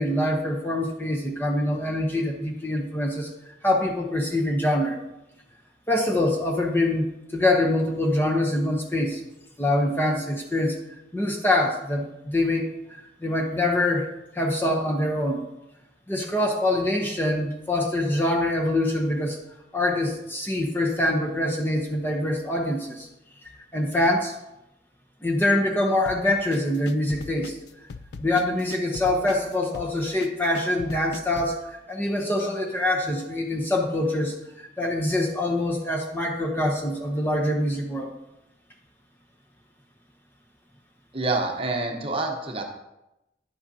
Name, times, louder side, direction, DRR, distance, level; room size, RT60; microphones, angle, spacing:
voice 1, 0.0-5.0 5.9-9.2 9.6-10.8 11.1-15.4 16.1-19.4 19.7-23.1 23.7-24.3 25.2-27.6 28.2-38.1, left 1 dB, 10° left, 0 dB, 0.7 m, -25 dB
sound 1, 26.1-31.6, left 4 dB, 75° left, 0.4 m, -40 dB
voice 2, 41.1-42.6, right 2 dB, 30° right, 2 dB, 0.9 m, -27 dB
10.0 x 7.8 x 2.8 m, 0.92 s
head